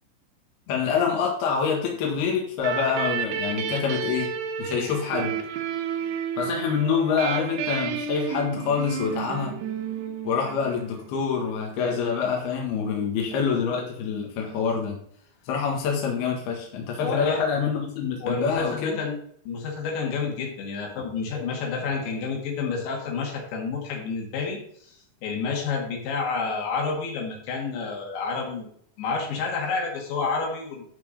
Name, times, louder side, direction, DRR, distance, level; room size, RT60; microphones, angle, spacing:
voice 1, 0.7-4.3 4.6-5.4 6.4-9.5 10.3-15.0 15.5-19.0, left 6 dB, 65° left, -1 dB, 3.6 m, -26 dB
sound 1, 2.6-11.1, right 7 dB, 75° right, 2.8 m, -31 dB
voice 2, 17.0-17.4 18.2-19.2 19.5-24.9 25.2-28.7 29.0-30.8, left 4 dB, 85° left, 0 dB, 4.4 m, -29 dB
12.5 x 4.4 x 5.2 m, 0.64 s
omnidirectional pair, 5.1 m